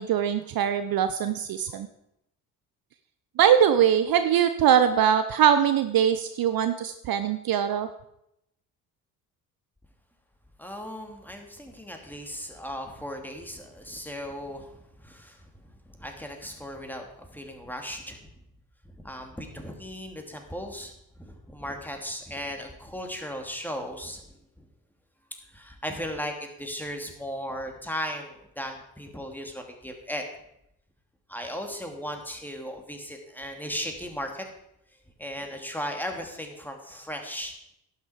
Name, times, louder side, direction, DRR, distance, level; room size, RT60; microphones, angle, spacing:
voice 1, 0.0-1.9 3.4-7.9, right 9 dB, 50° right, 11 dB, 0.8 m, -22 dB
voice 2, 10.6-15.5 15.8-18.3 18.8-24.2 24.6-24.7 25.5-30.2 31.3-34.5 35.2-37.5, equal, 5° left, 3 dB, 2.6 m, -37 dB
11.5 x 8.8 x 5.1 m, 0.79 s
hypercardioid pair, 45°, 46 cm